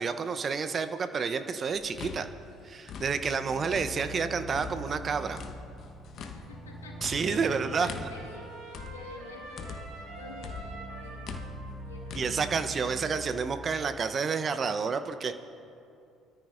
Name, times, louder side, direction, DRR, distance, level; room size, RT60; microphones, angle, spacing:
voice 1, 0.0-2.3 2.6-5.4 7.0-8.1 12.1-15.4, right 5 dB, 40° right, 10 dB, 0.8 m, -30 dB
sound 1, 1.8-4.2 4.5-10.1 10.4-12.3, left 5 dB, 50° left, 1.1 m, -43 dB
sound 2, 3.1-13.9, right 1 dB, 20° right, 3.8 m, -44 dB
voice 2, 6.2-12.5, left 3 dB, 90° left, -1 dB, 1.8 m, -49 dB
Trumpet, 7.0-13.6, right 2 dB, 65° right, 2.1 m, -48 dB
24.0 x 13.5 x 2.6 m, 2.6 s
hypercardioid pair, 55°, 0 cm